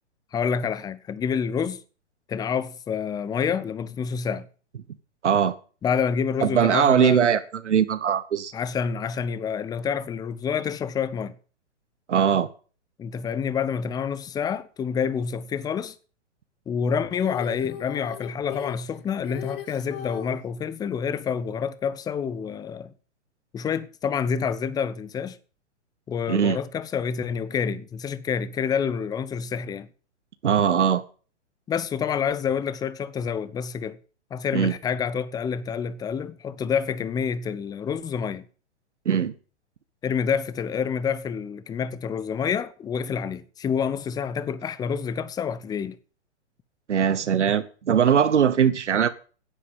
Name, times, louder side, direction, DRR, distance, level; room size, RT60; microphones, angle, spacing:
voice 1, 0.3-1.8 2.3-4.5 5.8-7.3 8.5-11.3 13.0-15.9 16.7-22.9 23.5-25.4 26.1-29.9 31.7-34.0 34.3-38.4 40.0-46.0, left 7 dB, 10° left, 0.6 m, -28 dB
voice 2, 5.2-5.6 6.4-8.5 12.1-12.5 26.3-26.6 30.4-31.0 34.5-34.7 39.0-39.3 46.9-49.1, right 8 dB, 80° right, 1.0 m, -21 dB
Female singing, 17.1-20.4 22.4-22.5, left 11 dB, 50° left, 2.0 m, -38 dB
10.0 x 8.5 x 7.3 m
hypercardioid pair, 120°, 35 cm